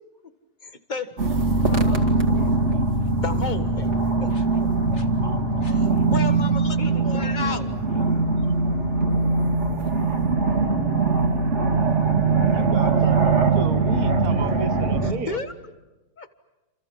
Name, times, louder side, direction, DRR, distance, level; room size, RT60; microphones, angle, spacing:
voice 1, 0.6-1.1 3.2-4.3 4.6-4.7 5.7-7.7 15.0-15.5 16.2-16.3, left 4 dB, 30° left, 1.7 m, -32 dB
sound 1, 1.2-15.1, right 3 dB, 55° right, 2.7 m, -21 dB
voice 2, 1.6-2.9 4.3-4.4 4.9-5.1 5.6-6.1 6.8-7.7 8.4-8.5, left 4 dB, 50° left, 1.9 m, -42 dB
voice 3, 11.8-15.4, right 5 dB, 85° right, 1.8 m, -33 dB
28.5 x 27.5 x 7.5 m
omnidirectional pair, 1.5 m